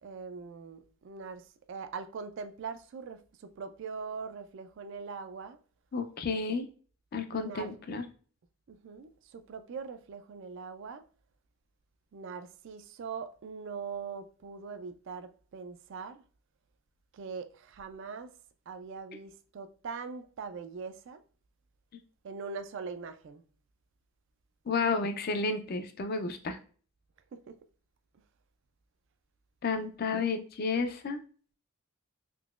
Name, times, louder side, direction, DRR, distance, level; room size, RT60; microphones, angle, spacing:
voice 1, 0.0-5.6 7.3-7.8 8.7-11.0 12.1-16.2 17.1-18.3 18.7-21.2 22.2-23.4 27.3-27.6, right 5 dB, 55° right, 0.3 m, -42 dB
voice 2, 5.9-6.6 7.1-8.0 24.7-26.6 29.6-31.2, left 4 dB, 45° left, 0.4 m, -31 dB
3.7 x 2.8 x 2.3 m
head